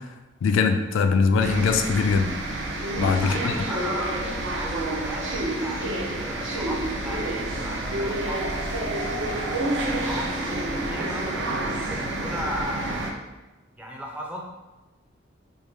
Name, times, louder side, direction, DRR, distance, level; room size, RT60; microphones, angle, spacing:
voice 1, 0.4-2.3 3.0-3.5, left 5 dB, 80° left, 6 dB, 0.3 m, -21 dB
sound 1, 1.4-13.1, right 1 dB, 65° right, 0.5 m, -28 dB
voice 2, 3.2-9.5 9.8-13.2 13.8-14.4, equal, 5° right, -1 dB, 0.4 m, -36 dB
3.5 x 2.2 x 3.1 m, 1.1 s
head